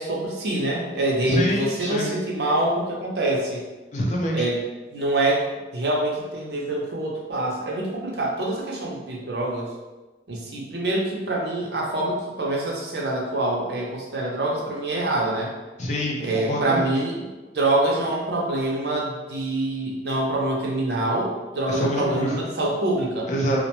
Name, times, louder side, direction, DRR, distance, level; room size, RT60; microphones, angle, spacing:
voice 1, 0.0-3.6 4.3-4.6 4.9-5.4 5.7-9.7 10.3-15.5 16.2-17.3 17.5-23.3, right 2 dB, 70° right, -2 dB, 0.6 m, -25 dB
voice 2, 1.2-2.1 3.9-4.5 15.8-16.9 21.7-22.3 23.3-23.6, equal, 40° left, -2 dB, 0.5 m, -25 dB
2.4 x 2.1 x 2.8 m, 1.2 s
head